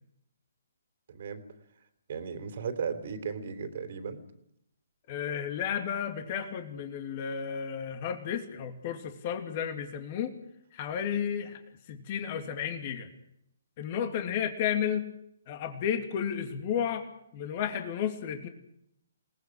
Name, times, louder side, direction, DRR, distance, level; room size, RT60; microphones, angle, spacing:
voice 1, 1.1-1.4 2.1-4.2, right 6 dB, 50° right, 8 dB, 3.4 m, -35 dB
voice 2, 5.1-10.3 10.7-11.6 11.9-13.1 13.8-15.1 15.5-17.1 17.3-18.5, left 8 dB, 35° left, 6 dB, 2.8 m, -32 dB
28.0 x 19.5 x 6.4 m, 0.77 s
figure-of-eight pair, 135°, 0 cm